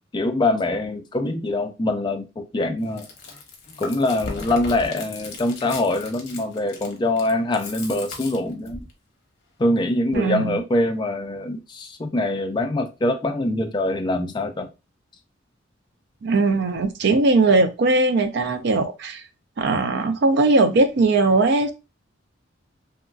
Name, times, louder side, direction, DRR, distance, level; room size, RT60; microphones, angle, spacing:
voice 1, 0.1-3.1 3.8-8.9 9.6-14.7, left 2 dB, 25° left, 0.3 m, -24 dB
Chewing mastication, 2.8-8.9, left 3 dB, 60° left, 0.7 m, -37 dB
voice 2, 10.1-10.6 16.2-19.2 19.6-21.7, right 3 dB, 60° right, 0.4 m, -19 dB
2.8 x 2.5 x 2.3 m
head